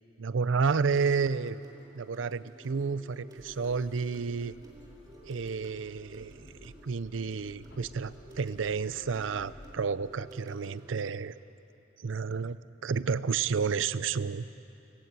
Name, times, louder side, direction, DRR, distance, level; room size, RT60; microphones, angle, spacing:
voice 1, 0.2-1.6 1.9-4.5 5.2-11.4 12.0-12.6 12.8-14.5, right 5 dB, 85° right, 16 dB, 0.5 m, -31 dB
sound 1, 1.1-11.1, equal, 20° right, 2.6 m, -53 dB
sound 2, 3.4-9.8, left 1 dB, 80° left, 1.5 m, -55 dB
19.5 x 17.0 x 8.3 m, 3.0 s
head